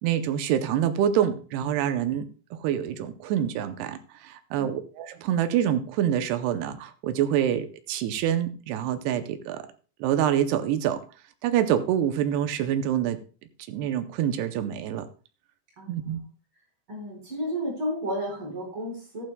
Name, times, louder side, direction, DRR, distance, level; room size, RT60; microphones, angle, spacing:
voice 1, 0.0-2.3 2.5-9.7 10.0-11.0 11.4-13.2 13.7-15.1 15.9-16.2, right 10 dB, 75° right, 10 dB, 2.5 m, -26 dB
voice 2, 15.8-16.2 16.9-19.2, equal, 30° right, -2 dB, 5.4 m, -32 dB
14.5 x 12.0 x 2.3 m, 0.36 s
omnidirectional pair, 5.3 m